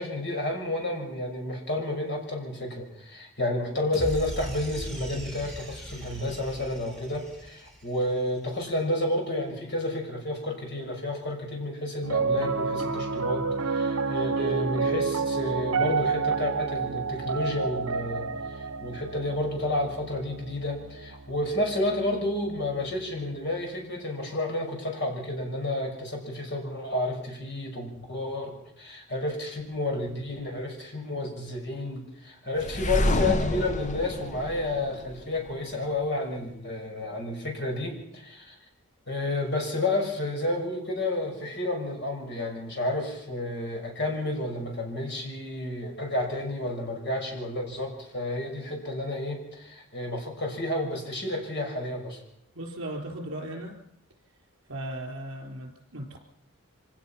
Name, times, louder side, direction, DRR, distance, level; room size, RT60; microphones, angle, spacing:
voice 1, 0.0-38.5 39.1-52.2, left 1 dB, 50° left, 2 dB, 6.0 m, -31 dB
sound 1, 3.9-8.3, right 1 dB, ahead, 4.6 m, -39 dB
Piano, 12.0-22.4, right 4 dB, 80° right, 1.2 m, -29 dB
sound 2, 32.6-35.5, left 1 dB, 35° left, 1.0 m, -28 dB
voice 2, 52.5-53.8 54.7-56.2, right 1 dB, 60° right, 3 dB, 4.3 m, -37 dB
25.0 x 17.5 x 5.9 m, 0.76 s
head